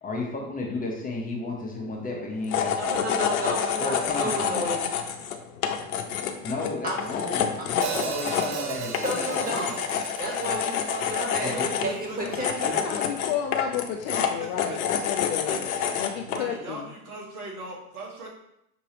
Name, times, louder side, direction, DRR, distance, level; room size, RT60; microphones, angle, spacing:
voice 1, 0.0-3.0 3.8-4.7 6.4-9.7 11.4-11.7, left 2 dB, 20° left, -1 dB, 1.0 m, -33 dB
sound 1, 2.4-16.5, left 8 dB, 70° left, 0.7 m, -28 dB
voice 2, 2.8-4.9 6.8-7.0 8.9-9.8 10.2-12.8, equal, 20° right, -2 dB, 1.7 m, -32 dB
Hi-hat, 7.8-12.0, right 6 dB, 55° right, 0.7 m, -36 dB
voice 3, 11.4-13.2 14.1-15.1 15.4-15.8 16.2-18.3, right 2 dB, 80° right, -2 dB, 1.5 m, -39 dB
voice 4, 12.6-15.7 16.0-16.8, left 9 dB, 35° left, 4 dB, 0.4 m, -32 dB
6.0 x 3.0 x 2.9 m, 0.78 s
hypercardioid pair, 85°, 44 cm